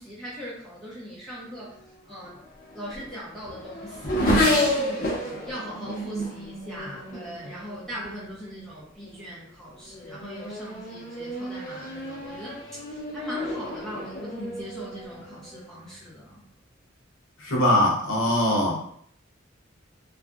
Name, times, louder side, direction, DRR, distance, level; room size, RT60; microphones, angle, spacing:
voice 1, 0.0-1.8 2.1-2.4 2.7-16.4, equal, ahead, -9 dB, 0.6 m, -40 dB
Race car auto racing / Accelerating revving vroom, 2.4-8.3 9.1-9.4 9.9-15.8, left 1 dB, 50° left, 0.8 m, -30 dB
voice 2, 17.4-18.8, left 1 dB, 80° left, -2 dB, 0.7 m, -22 dB
2.7 x 2.4 x 2.3 m, 0.63 s
head